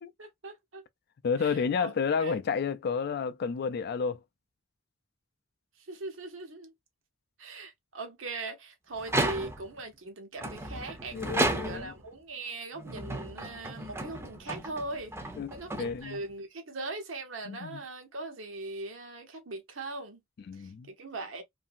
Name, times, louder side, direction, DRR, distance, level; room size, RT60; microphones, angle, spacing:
voice 1, 0.2-0.8 1.4-2.4 5.8-6.7 7.4-20.2 20.5-21.4, right 2 dB, 80° right, 1.0 m, -40 dB
voice 2, 1.2-4.2 11.1-11.9 15.4-15.5 15.8-16.2 17.5-17.8 20.5-20.9, left 6 dB, 55° left, 0.3 m, -31 dB
sound 1, 9.0-9.8 10.4-12.1 12.7-16.3, right 2 dB, 15° right, 0.5 m, -33 dB
2.7 x 2.6 x 2.4 m
head